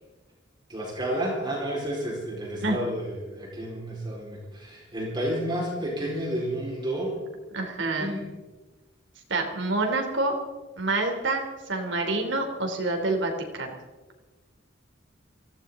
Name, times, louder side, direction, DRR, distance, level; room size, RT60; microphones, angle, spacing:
voice 1, 0.7-7.2 7.9-8.3, right 1 dB, 25° right, -3 dB, 4.4 m, -31 dB
voice 2, 7.5-8.1 9.3-10.3 10.8-13.7, right 2 dB, 65° right, 3 dB, 3.1 m, -27 dB
23.0 x 16.0 x 3.8 m, 1.2 s
head